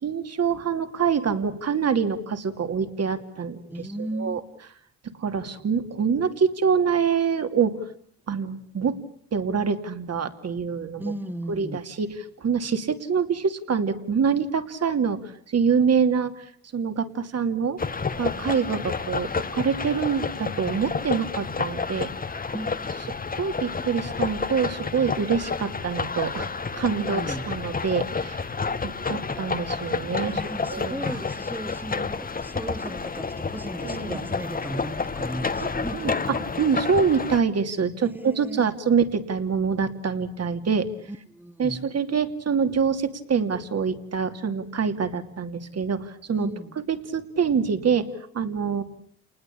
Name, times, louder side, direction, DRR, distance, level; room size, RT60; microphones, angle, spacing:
voice 1, 0.0-3.9 4.2-4.4 5.2-7.8 8.3-9.0 9.3-11.0 11.5-17.8 18.2-22.1 23.3-26.5 26.7-28.5 28.8-30.4 30.7-31.2 33.8-34.3 35.6-36.1 36.6-40.9 41.6-46.5 47.1-48.8, right 6 dB, 45° right, 8 dB, 2.8 m, -25 dB
voice 2, 3.7-4.4 11.0-11.8 18.3-18.5 22.5-23.2 26.9-27.5 30.2-36.5 38.0-38.8 41.1-41.9 46.3-46.8, right 1 dB, 5° right, 13 dB, 1.6 m, -36 dB
sound 1, 17.8-37.4, left 4 dB, 25° left, 1.4 m, -30 dB
28.5 x 20.0 x 8.6 m, 0.62 s
supercardioid pair, 80°, 35 cm